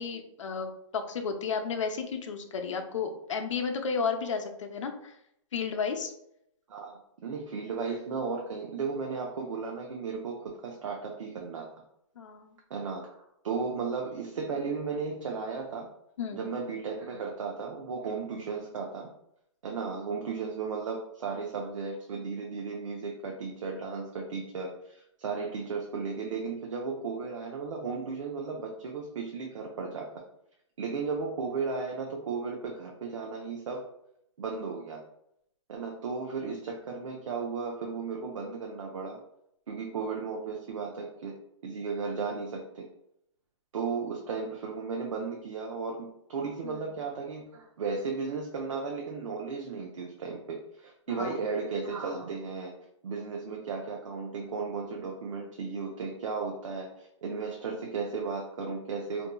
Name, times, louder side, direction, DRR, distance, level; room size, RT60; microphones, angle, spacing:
voice 1, 0.0-5.1 5.5-6.1 12.2-12.6 16.2-16.4 46.6-46.8 51.1-51.3, left 5 dB, 70° left, 4 dB, 0.6 m, -33 dB
voice 2, 6.7-11.7 12.7-15.9 16.3-19.1 19.6-30.1 30.8-33.9 34.4-35.0 35.7-39.2 39.7-42.9 43.7-52.7 53.0-59.3, right 5 dB, 75° right, 1 dB, 0.6 m, -35 dB
4.1 x 2.7 x 2.2 m, 0.77 s
hypercardioid pair, 170°, 16 cm